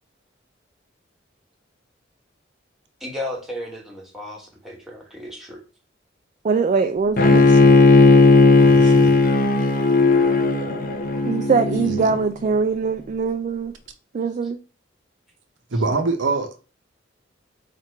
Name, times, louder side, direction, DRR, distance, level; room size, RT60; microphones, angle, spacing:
voice 1, 3.0-5.6, left 1 dB, ahead, 1.1 m, -34 dB
voice 2, 6.4-7.5 11.3-13.7 14.1-14.6, right 5 dB, 40° right, 0.3 m, -22 dB
Bowed string instrument, 7.2-12.2, left 3 dB, 50° left, 0.6 m, -15 dB
voice 3, 7.3-7.7 8.6-9.1 11.8-12.0 15.7-16.6, right 3 dB, 80° right, 0.7 m, -25 dB
4.3 x 2.5 x 4.4 m
head